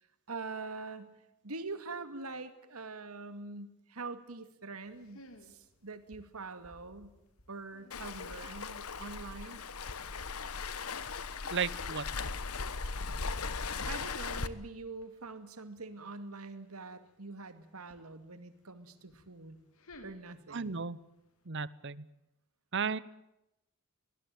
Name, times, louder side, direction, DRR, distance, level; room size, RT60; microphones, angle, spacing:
voice 1, 0.3-1.1 1.4-7.1 7.5-9.6 13.9-19.6 20.0-20.8, right 3 dB, 85° right, 10 dB, 2.3 m, -44 dB
sound 1, 4.8-21.5, left 1 dB, 70° left, 3.0 m, -62 dB
Waves surf, 7.9-14.5, left 4 dB, 85° left, 1.2 m, -38 dB
voice 2, 11.5-12.1 20.5-21.0 21.5-22.1 22.7-23.0, right 5 dB, 55° right, 19 dB, 0.9 m, -34 dB
23.5 x 19.5 x 9.2 m, 0.87 s
head